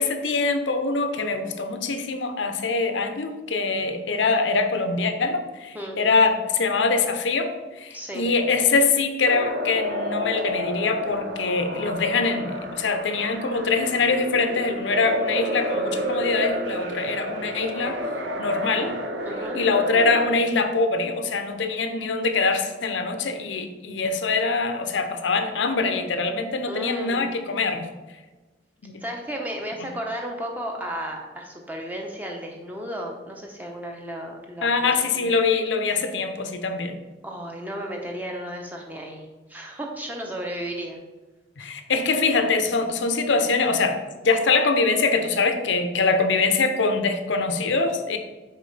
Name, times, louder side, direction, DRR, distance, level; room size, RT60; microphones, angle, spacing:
voice 1, 0.0-7.5 7.8-18.0 18.4-19.0 19.5-27.9 28.8-29.0 34.6-37.0 41.6-44.0 44.2-48.2, left 4 dB, 85° left, 8 dB, 0.6 m, -23 dB
voice 2, 7.9-8.3 19.2-19.6 26.7-27.3 29.0-34.7 35.2-35.3 37.2-41.0 41.6-41.7, equal, 10° right, 0 dB, 0.7 m, -34 dB
sound 1, 9.2-20.3, equal, 75° right, 0.7 m, -30 dB
6.5 x 4.8 x 3.3 m, 1.2 s
head